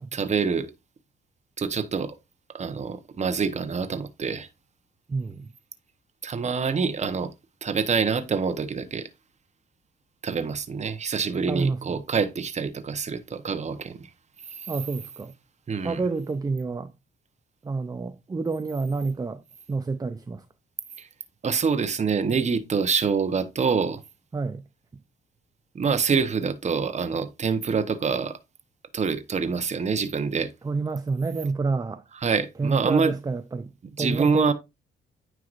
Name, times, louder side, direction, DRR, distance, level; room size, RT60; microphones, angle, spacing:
voice 1, 0.1-0.7 1.6-2.2 2.5-4.5 6.2-7.3 7.6-9.1 10.2-14.0 15.7-16.0 21.0-21.1 21.4-24.0 25.7-28.3 28.9-30.5 32.1-33.1 34.0-34.5, right 5 dB, 35° right, 1.0 m, -26 dB
voice 2, 5.1-5.5 11.5-11.8 14.7-15.3 15.8-16.9 17.6-19.4 19.7-20.4 24.3-24.6 30.6-32.0 32.6-33.7 34.0-34.5, right 4 dB, 20° right, 0.5 m, -28 dB
9.5 x 4.7 x 2.5 m
cardioid pair, 90°, 20 cm